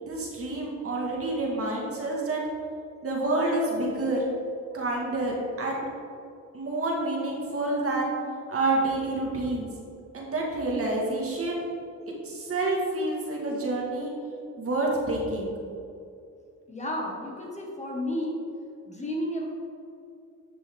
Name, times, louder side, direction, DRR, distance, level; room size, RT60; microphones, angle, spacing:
voice 1, 0.0-2.4 3.0-4.2 4.7-5.9 6.5-8.1 8.5-9.7 10.1-11.6 12.1-14.1 14.6-15.5, right 2 dB, 45° right, -2 dB, 2.0 m, -28 dB
voice 2, 16.7-18.4 18.9-19.5, left 1 dB, 20° left, -2 dB, 1.8 m, -32 dB
10.5 x 6.1 x 3.8 m, 2.5 s
cardioid pair, 95°, 31 cm